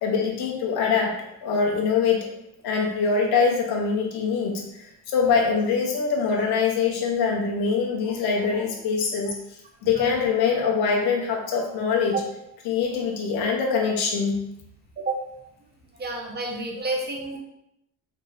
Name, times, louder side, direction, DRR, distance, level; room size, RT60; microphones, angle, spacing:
voice 1, 0.0-1.2 1.4-2.3 2.6-9.4 9.8-12.1 12.7-14.4, left 5 dB, 85° left, 0 dB, 0.9 m, -23 dB
voice 2, 9.8-10.2 12.1-12.2 15.0-15.2 15.9-17.4, right 3 dB, 25° right, 0 dB, 0.8 m, -30 dB
3.4 x 2.8 x 3.3 m, 0.81 s
cardioid pair, 105°, 38 cm